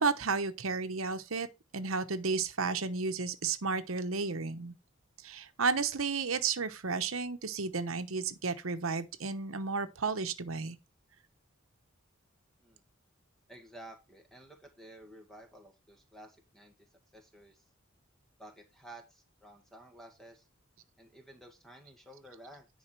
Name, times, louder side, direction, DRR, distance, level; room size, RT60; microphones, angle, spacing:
voice 1, 0.0-1.5 1.7-4.7 5.2-10.8, right 4 dB, 90° right, 1.0 m, -32 dB
voice 2, 13.5-16.7 17.1-17.6 18.4-20.4 21.0-22.7, right 1 dB, ahead, 1.8 m, -53 dB
10.0 x 5.0 x 4.5 m
head